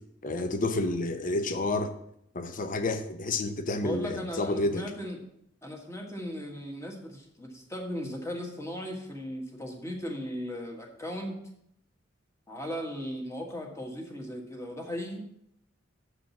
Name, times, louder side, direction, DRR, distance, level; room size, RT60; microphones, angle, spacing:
voice 1, 0.2-1.9 2.3-4.8, left 2 dB, 45° left, 0.7 m, -29 dB
voice 2, 3.8-5.2 5.6-11.3 12.5-15.3, equal, 15° left, 1.5 m, -37 dB
7.4 x 5.0 x 7.0 m
head